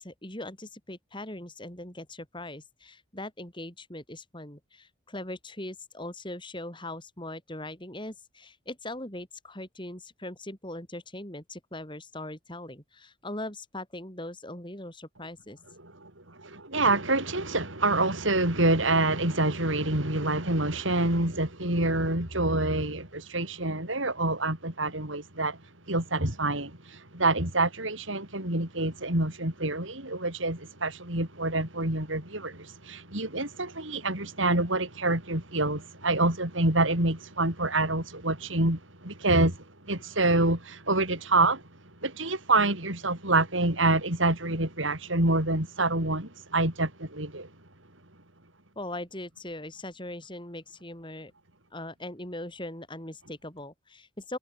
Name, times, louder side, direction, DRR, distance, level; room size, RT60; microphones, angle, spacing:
voice 1, 0.0-15.6 48.8-51.3 51.7-54.4, left 1 dB, 25° left, 5.4 m, -40 dB
voice 2, 15.8-25.6 25.9-41.6 42.0-47.5, right 2 dB, 75° right, 6.3 m, -27 dB
head